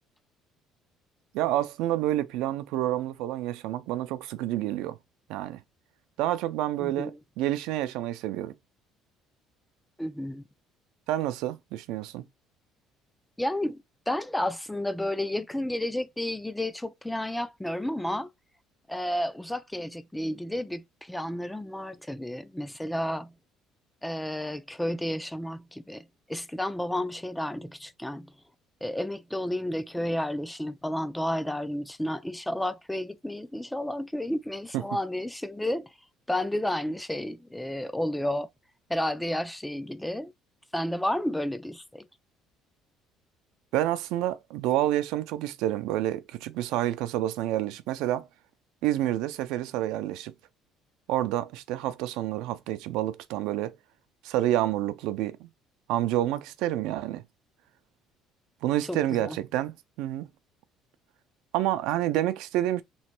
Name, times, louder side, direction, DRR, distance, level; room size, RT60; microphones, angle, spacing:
voice 1, 1.3-5.0 5.3-5.6 6.2-8.5 11.1-12.3 34.7-34.8 43.7-48.3 48.8-50.3 51.1-53.7 54.2-55.5 55.9-57.2 58.6-60.3 61.5-62.8, right 13 dB, 85° right, 0.4 m, -28 dB
voice 2, 6.8-7.1 10.0-10.4 13.4-13.8 14.1-18.3 18.9-23.3 24.0-26.0 26.3-28.3 28.8-35.9 36.3-38.5 38.9-40.3 40.7-42.0 58.9-59.4, left 1 dB, 5° left, 0.3 m, -31 dB
3.3 x 3.1 x 4.3 m
cardioid pair, 145°, 0 cm